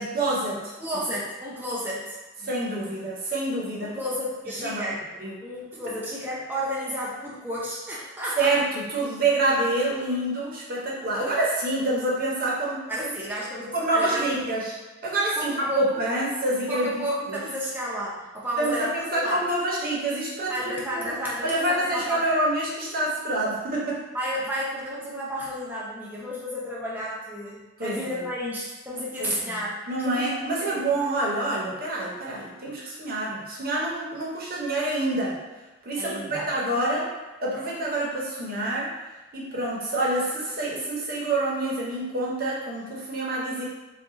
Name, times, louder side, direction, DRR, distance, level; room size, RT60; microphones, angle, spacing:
voice 1, 0.0-0.7 2.4-3.9 4.6-4.8 5.2-5.3 8.4-12.8 13.7-14.7 15.0-16.9 17.3-17.4 18.6-21.1 21.4-24.0 27.8-28.2 29.2-35.4 35.8-37.1 37.4-38.9 39.3-43.6, right 2 dB, 45° right, -4 dB, 0.7 m, -27 dB
voice 2, 0.8-2.2 3.8-8.5 12.9-14.4 15.4-16.0 16.7-19.4 20.5-22.2 24.1-29.8 30.1-30.8 36.0-36.5, equal, 10° right, -6 dB, 0.5 m, -32 dB
2.4 x 2.3 x 3.8 m, 1.1 s
head